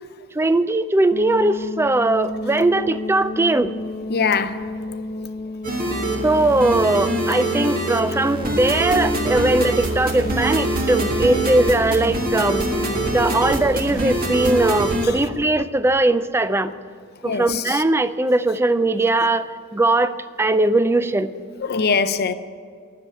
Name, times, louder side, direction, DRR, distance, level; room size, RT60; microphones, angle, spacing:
voice 1, 0.3-3.7 6.2-12.7 13.1-16.7 17.2-21.3, right 2 dB, 10° right, 0.3 m, -20 dB
sound 1, 1.1-13.5, left 2 dB, 25° left, 0.9 m, -32 dB
voice 2, 4.1-5.0 13.0-13.1 13.4-13.5 17.2-17.8 21.6-22.3, left 5 dB, 45° left, 0.6 m, -23 dB
sound 2, 5.6-15.1, right 1 dB, 40° right, 1.6 m, -24 dB
10.5 x 7.0 x 9.0 m
head